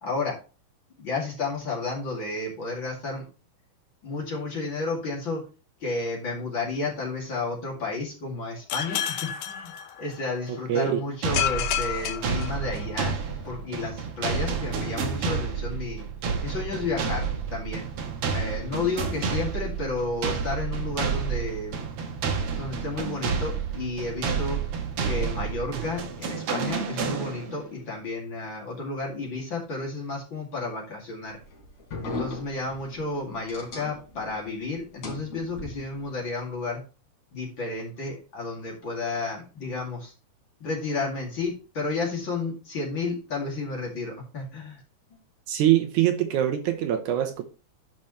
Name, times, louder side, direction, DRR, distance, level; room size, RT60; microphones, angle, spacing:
voice 1, 0.0-0.4 1.0-3.3 4.0-5.4 5.8-9.7 10.0-13.2 13.4-16.1 16.4-17.9 18.3-22.2 22.6-24.7 25.0-31.4 32.0-36.8 37.3-40.1 40.6-44.8, left 3 dB, 40° left, 2.7 m, -32 dB
sound 1, 8.7-10.5 11.3-13.1, left 10 dB, 80° left, 2.5 m, -30 dB
voice 2, 10.5-11.0 45.5-47.4, right 12 dB, 75° right, 2.2 m, -23 dB
sound 2, 11.2-27.7, right 5 dB, 60° right, 1.6 m, -30 dB
sound 3, 31.2-34.5 34.7-36.1, left 3 dB, 55° left, 4.3 m, -38 dB
12.0 x 5.3 x 3.1 m
omnidirectional pair, 3.8 m